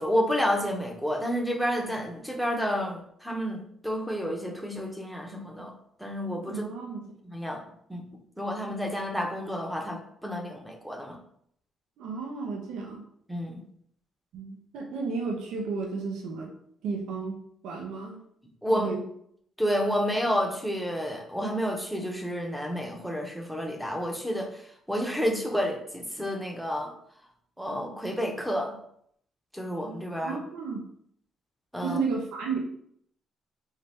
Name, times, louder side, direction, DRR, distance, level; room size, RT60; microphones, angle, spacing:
voice 1, 0.0-5.7 6.0-6.6 7.3-7.6 7.9-8.0 8.4-11.2 13.3-13.6 18.6-18.9 19.6-26.9 27.6-28.8 29.5-30.4 31.7-32.0, equal, ahead, 2 dB, 0.7 m, -30 dB
voice 2, 6.4-7.1 12.0-13.1 14.3-16.5 16.8-18.2 18.7-19.0 30.2-30.9 31.8-32.6, right 4 dB, 85° right, 0 dB, 0.7 m, -33 dB
3.2 x 2.8 x 3.4 m, 0.68 s
cardioid pair, 90°, 0 cm